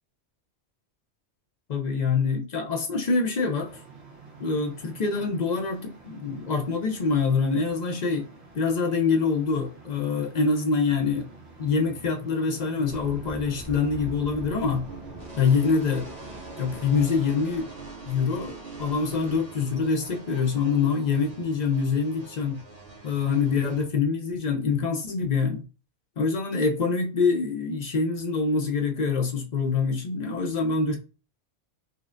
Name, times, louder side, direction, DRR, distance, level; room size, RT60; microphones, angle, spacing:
voice 1, 1.7-3.8 4.4-8.3 8.5-11.3 11.6-14.8 15.4-16.0 16.6-17.7 18.1-22.6 23.0-25.6 26.2-31.0, left 5 dB, 50° left, 0.5 m, -25 dB
sound 1, 3.6-17.4, right 4 dB, 60° right, 1.2 m, -49 dB
sound 2, 12.8-23.8, right 2 dB, 35° right, 1.2 m, -42 dB
5.1 x 2.1 x 2.5 m
omnidirectional pair, 1.2 m